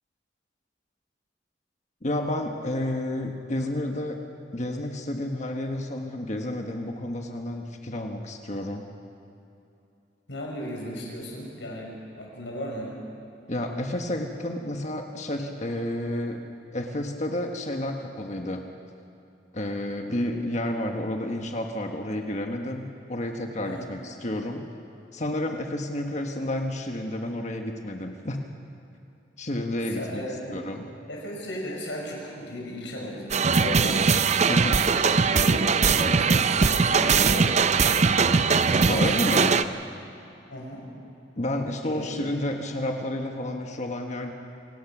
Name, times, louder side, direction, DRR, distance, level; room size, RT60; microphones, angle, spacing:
voice 1, 2.0-4.2 4.5-8.9 13.5-16.4 16.7-18.6 19.5-24.7 25.1-28.5 29.4-30.2 30.5-30.9 34.5-34.8 38.9-39.5 41.4-44.3, left 1 dB, 40° left, 3 dB, 1.4 m, -30 dB
voice 2, 10.3-12.9 23.6-23.9 29.9-30.6 31.1-34.0 34.7-38.3 38.9-39.7 40.5-40.9 41.8-42.2, equal, 85° left, -2 dB, 6.1 m, -36 dB
sound 1, 33.3-39.6, right 5 dB, 40° right, 0.6 m, -21 dB
27.0 x 18.0 x 6.1 m, 2.7 s
head